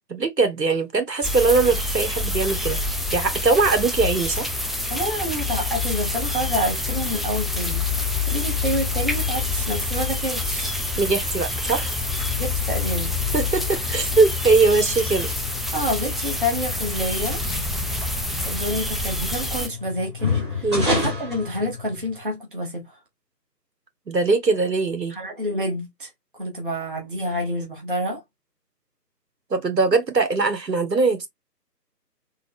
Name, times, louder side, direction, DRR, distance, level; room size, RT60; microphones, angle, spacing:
voice 1, 0.1-2.8 3.1-4.5 11.0-12.0 13.3-15.3 20.6-20.9 24.1-25.1 29.5-31.3, right 3 dB, 80° right, 1.2 m, -21 dB
sound 1, 1.2-19.7, left 3 dB, ahead, 0.3 m, -27 dB
voice 2, 4.9-10.8 12.4-13.2 15.7-17.4 18.5-23.0 25.1-26.1 26.4-28.2, equal, 30° right, 0.7 m, -28 dB
sound 2, 11.8-22.3, left 3 dB, 15° right, 1.1 m, -31 dB
3.6 x 2.0 x 3.4 m
figure-of-eight pair, 155°, 50 cm